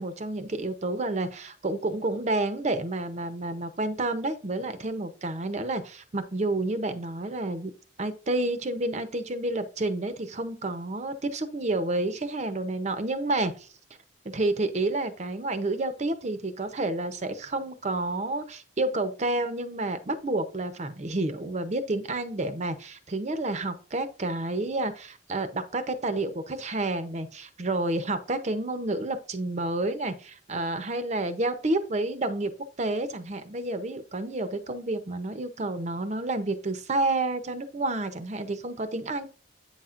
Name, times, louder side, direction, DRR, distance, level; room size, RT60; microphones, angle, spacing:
voice 1, 0.0-7.7 8.0-13.7 14.2-32.5 32.8-39.3, right 2 dB, 35° right, 11 dB, 0.6 m, -30 dB
8.4 x 5.7 x 2.5 m, 0.37 s
head